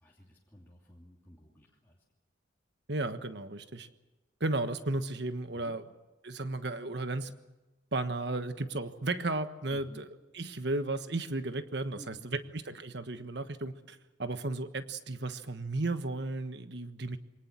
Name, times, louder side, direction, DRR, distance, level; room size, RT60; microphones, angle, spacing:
voice 1, 0.0-2.0 5.5-5.8 9.7-10.0 11.9-12.3, equal, 10° left, -5 dB, 2.9 m, -54 dB
voice 2, 2.9-3.9 4.4-5.8 6.2-7.3 7.9-10.1 10.3-17.2, right 2 dB, 55° right, 9 dB, 1.4 m, -34 dB
24.0 x 19.0 x 7.5 m, 1.1 s
head